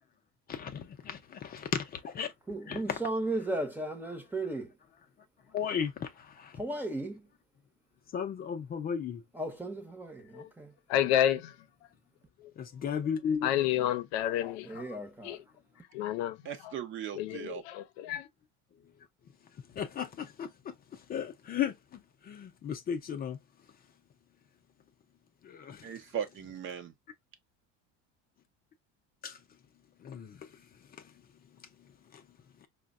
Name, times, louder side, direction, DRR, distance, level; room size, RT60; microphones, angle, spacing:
voice 1, 0.5-2.3 2.7-3.0 5.5-6.6 8.1-9.2 12.6-13.5 18.8-18.9 19.5-23.4 25.4-25.8 29.2-29.4 30.0-31.2 31.6-32.3 32.6-32.7, left 7 dB, 30° left, 0.5 m, -36 dB
voice 2, 2.5-4.7 6.6-7.3 9.3-10.7 14.6-15.4, right 2 dB, 5° right, 0.8 m, -35 dB
voice 3, 10.9-11.6 13.4-14.9 15.2-15.4 15.9-16.4 16.6-16.7 17.2-18.3, left 11 dB, 85° left, 0.6 m, -30 dB
voice 4, 16.4-17.6 25.8-26.9, right 8 dB, 40° right, 0.7 m, -38 dB
5.0 x 2.2 x 2.3 m
cardioid pair, 135°, 31 cm